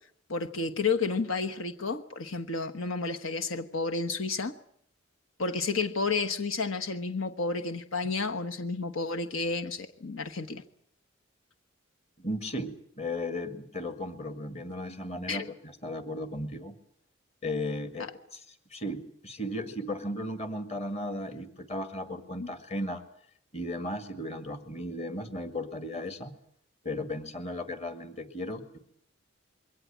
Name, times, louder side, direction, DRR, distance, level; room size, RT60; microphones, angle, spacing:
voice 1, 0.3-4.5 5.4-10.6 15.3-15.5 22.4-22.5, left 4 dB, 85° left, 7 dB, 1.2 m, -31 dB
voice 2, 12.2-16.7 17.4-18.4 18.7-23.0 23.5-26.4 26.8-28.8, left 1 dB, 30° left, 9 dB, 2.1 m, -35 dB
22.5 x 17.5 x 9.0 m, 0.68 s
head